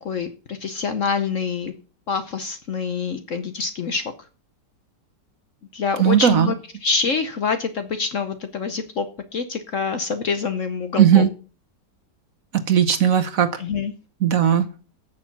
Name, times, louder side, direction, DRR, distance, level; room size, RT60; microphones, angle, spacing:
voice 1, 0.0-1.7 2.1-4.1 5.7-6.5 6.8-9.1 9.3-11.3 13.6-13.9, left 5 dB, 55° left, 9 dB, 1.0 m, -26 dB
voice 2, 6.0-6.5 11.0-11.3 12.5-13.5 14.2-14.7, right 9 dB, 55° right, 10 dB, 1.2 m, -17 dB
9.6 x 6.7 x 5.9 m, 0.37 s
omnidirectional pair, 2.0 m